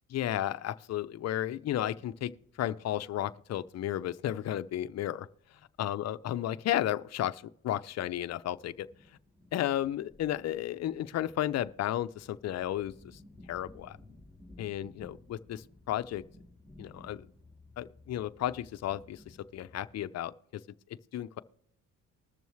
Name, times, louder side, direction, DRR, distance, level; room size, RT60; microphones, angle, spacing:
voice 1, 0.1-2.3 2.6-5.3 5.8-8.9 9.5-13.2 13.5-14.0 14.6-16.2 16.8-17.3 17.8-20.6 21.1-21.4, left 12 dB, 55° left, 0.6 m, -33 dB
sound 1, 2.4-20.3, left 2 dB, 5° right, 3.9 m, -58 dB
20.5 x 6.9 x 3.1 m
cardioid pair, 105°, 32 cm